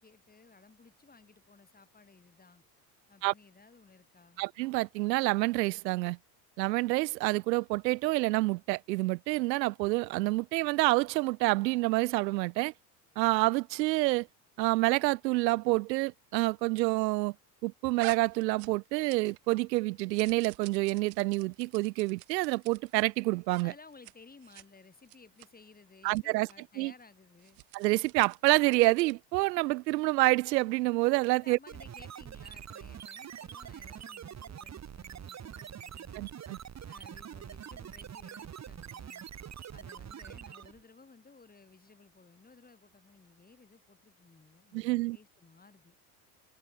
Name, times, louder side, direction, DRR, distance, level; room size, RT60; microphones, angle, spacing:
voice 1, 0.0-2.6 3.1-4.4 23.6-27.6 31.4-36.3 36.8-39.3 39.7-46.0, left 4 dB, 20° left, 7.1 m, -57 dB
voice 2, 4.4-6.2 6.6-12.7 13.2-14.3 14.6-17.3 17.6-23.7 26.0-26.5 26.8-26.9 27.7-31.6 36.1-36.6 44.7-45.2, right 21 dB, 90° right, 0.7 m, -28 dB
sound 1, 18.0-19.5 19.7-23.0 23.5-23.7 23.9-24.1 24.4-24.7 25.1-25.5 26.1-26.2 26.5-26.6 27.4-29.2, right 40 dB or more, 70° right, 2.8 m, -48 dB
sound 2, 31.7-40.8, right 8 dB, 30° right, 2.9 m, -45 dB
supercardioid pair, 95°, 49 cm